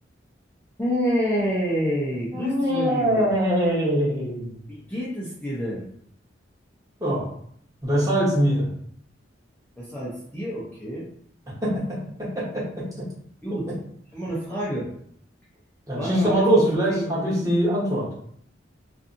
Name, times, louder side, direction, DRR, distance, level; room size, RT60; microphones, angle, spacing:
voice 1, 0.8-3.3 4.7-5.9 9.8-11.1 13.4-13.7 14.1-14.9 15.9-17.2, equal, 10° left, -8 dB, 0.6 m, -28 dB
voice 2, 2.3-4.5 7.0-7.3 7.8-8.7 11.6-11.7 12.2-12.8 15.9-18.1, equal, 20° right, -7 dB, 1.0 m, -22 dB
2.6 x 2.5 x 2.5 m, 0.65 s
head